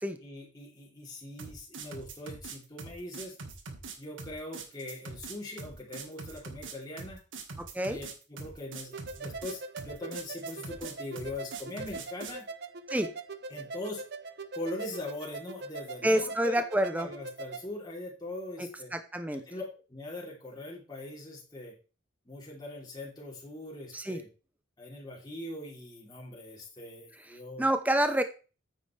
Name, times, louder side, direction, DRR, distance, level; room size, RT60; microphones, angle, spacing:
voice 1, 0.2-3.4 4.0-7.2 7.9-12.5 13.5-14.0 14.5-16.6 17.0-18.9 19.3-21.8 22.2-24.3 24.8-27.6, left 1 dB, 20° left, -3 dB, 3.3 m, -41 dB
sound 1, 1.4-12.4, right 4 dB, 75° right, 1.7 m, -43 dB
voice 2, 7.6-8.0 12.9-13.1 16.0-17.1 19.1-19.4 23.9-24.2 27.6-28.2, right 1 dB, 10° right, 8 dB, 0.7 m, -27 dB
sound 2, 8.9-17.7, right 3 dB, 55° right, 0.7 m, -42 dB
9.7 x 8.9 x 3.3 m, 0.34 s
head